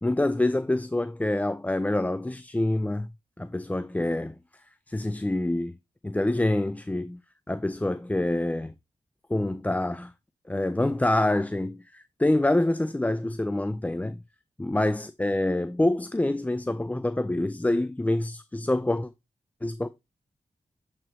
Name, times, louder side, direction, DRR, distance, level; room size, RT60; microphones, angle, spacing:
voice 1, 0.0-3.1 3.4-4.3 4.9-5.8 6.0-7.2 7.5-8.7 9.3-10.1 10.5-14.2 14.6-19.1 19.6-19.9, left 1 dB, 10° left, 0.4 m, -26 dB
7.4 x 4.6 x 3.1 m
cardioid pair, 45°, 13 cm